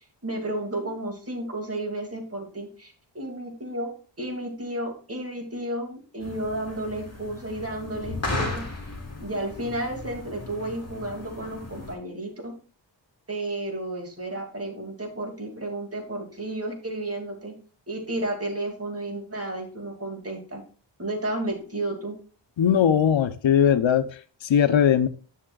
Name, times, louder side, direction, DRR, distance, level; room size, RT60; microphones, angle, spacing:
voice 1, 0.2-3.9 4.2-8.7 9.2-12.5 13.3-17.5 17.9-20.6 21.0-22.2, right 1 dB, 30° right, 2.3 m, -32 dB
sound 1, 6.2-11.9, left 2 dB, 35° left, 2.4 m, -35 dB
voice 2, 22.6-24.1 24.5-25.1, left 8 dB, 80° left, 0.7 m, -19 dB
10.0 x 6.7 x 2.3 m
wide cardioid pair, 90°, 45 cm